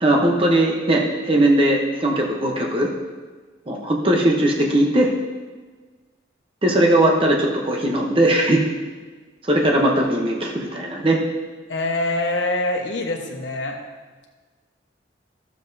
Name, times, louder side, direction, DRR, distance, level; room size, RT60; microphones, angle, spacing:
voice 1, 0.0-2.9 3.7-5.1 6.6-8.6 9.5-11.2, right 1 dB, 30° right, 0 dB, 0.9 m, -19 dB
voice 2, 11.7-13.8, left 2 dB, 75° left, 0 dB, 1.2 m, -24 dB
12.5 x 7.2 x 2.7 m, 1.4 s
head